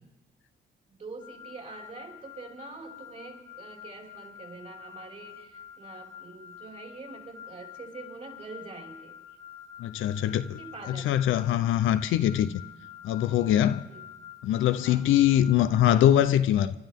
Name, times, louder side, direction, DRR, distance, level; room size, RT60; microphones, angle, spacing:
voice 1, 0.9-9.2 10.4-11.1 13.9-14.1 14.7-15.1, right 3 dB, 40° right, 5.5 m, -45 dB
sound 1, 1.2-16.1, left 9 dB, 60° right, 5.4 m, -47 dB
voice 2, 9.8-10.6 10.9-12.6 13.0-13.8 14.4-16.7, left 11 dB, 80° left, 0.7 m, -23 dB
29.5 x 12.5 x 3.7 m
cardioid pair, 90°, 20 cm